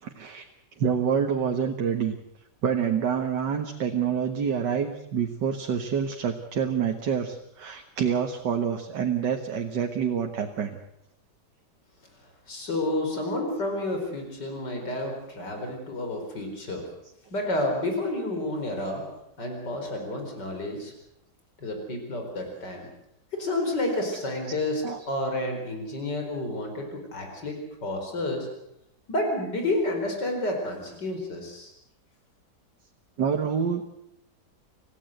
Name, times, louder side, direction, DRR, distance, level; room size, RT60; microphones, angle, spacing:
voice 1, 0.0-0.5 0.8-2.1 2.6-10.7 24.8-25.0 33.2-33.8, right 7 dB, 85° right, 3 dB, 2.1 m, -27 dB
voice 2, 12.5-16.9 17.3-19.0 19.4-20.9 21.6-22.9 23.3-28.5 29.1-31.7, left 1 dB, 80° left, 3 dB, 5.1 m, -30 dB
27.0 x 16.0 x 8.0 m, 0.78 s
omnidirectional pair, 1.8 m